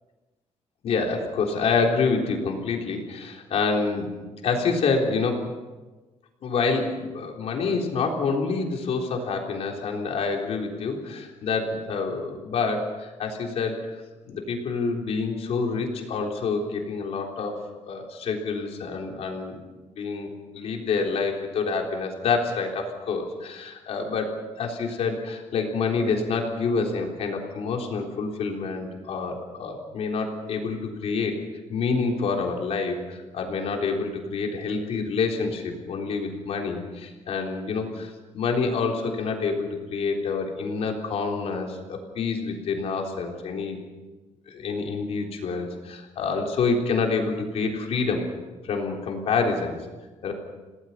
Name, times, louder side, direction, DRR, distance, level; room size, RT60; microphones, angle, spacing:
voice 1, 0.8-4.1 4.4-5.5 6.4-13.8 14.3-17.6 17.9-19.6 19.9-20.3 20.5-31.4 31.7-43.8 44.5-48.2 48.6-49.7 50.2-50.3, left 4 dB, 60° left, 1 dB, 3.7 m, -27 dB
28.5 x 18.5 x 5.6 m, 1.2 s
cardioid pair, 180°, 12 cm